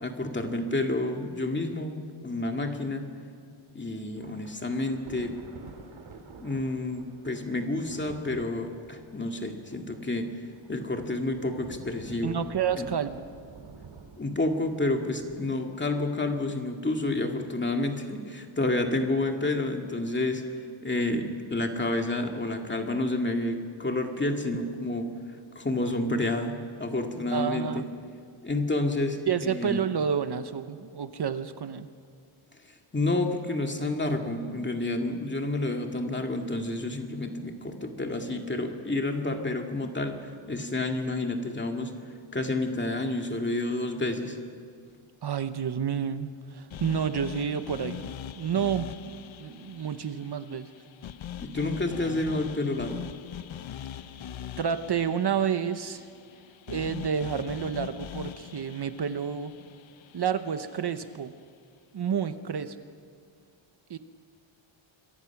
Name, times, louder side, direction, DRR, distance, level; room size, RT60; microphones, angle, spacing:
voice 1, 0.0-3.1 3.7-5.4 6.4-10.4 10.7-12.4 12.7-12.9 14.2-20.5 20.8-25.2 25.6-27.9 28.4-29.9 32.9-41.9 42.3-44.4 51.4-53.1, left 2 dB, 20° left, 3 dB, 2.2 m, -29 dB
Thunder / Rain, 4.2-15.5, right 4 dB, 75° right, 3.1 m, -49 dB
voice 2, 12.2-13.3 27.3-27.9 29.3-31.9 45.2-48.1 48.4-50.7 54.6-56.1 56.7-59.5 60.1-61.3 61.9-62.8 63.9-64.0, right 7 dB, 50° right, 10 dB, 1.0 m, -30 dB
sound 1, 46.7-60.9, left 10 dB, 65° left, 0.8 m, -42 dB
27.0 x 23.5 x 6.0 m, 2.2 s
wide cardioid pair, 145°, 49 cm